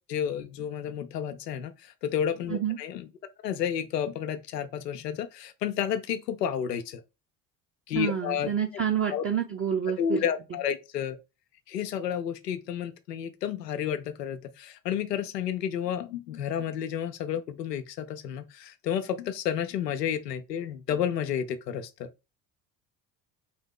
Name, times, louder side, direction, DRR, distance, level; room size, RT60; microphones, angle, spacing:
voice 1, 0.1-3.1 3.4-7.0 7.9-8.5 9.1-9.2 10.0-11.2 11.7-22.1, left 9 dB, 90° left, 0.5 m, -31 dB
voice 2, 7.9-10.2, right 8 dB, 25° right, 0.8 m, -28 dB
4.0 x 2.8 x 3.6 m
hypercardioid pair, 60°, 47 cm